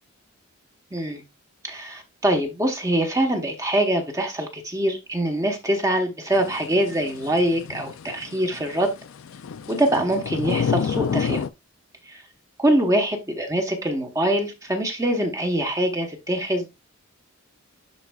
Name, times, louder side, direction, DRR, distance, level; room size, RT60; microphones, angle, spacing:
voice 1, 0.9-1.2 1.6-8.9 9.7-11.4 12.1-12.2 12.6-16.7, right 1 dB, 15° right, 1.0 m, -24 dB
sound 1, 6.3-11.5, left 6 dB, 65° left, 0.4 m, -29 dB
10.5 x 3.9 x 2.3 m
head